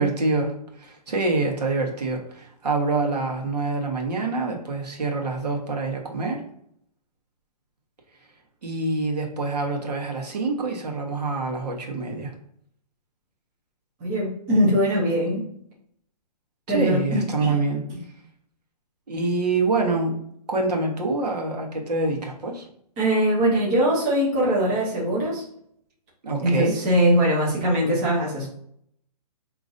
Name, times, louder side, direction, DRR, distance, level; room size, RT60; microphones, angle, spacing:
voice 1, 0.0-6.4 8.6-12.3 16.7-17.8 19.1-20.2 20.5-22.7 26.2-26.7, right 3 dB, 70° right, 1 dB, 1.3 m, -26 dB
voice 2, 14.0-15.4 16.7-17.5 23.0-25.4 26.4-28.5, equal, 10° right, -6 dB, 0.7 m, -21 dB
5.1 x 3.0 x 2.6 m, 0.69 s
hypercardioid pair, 175°, 21 cm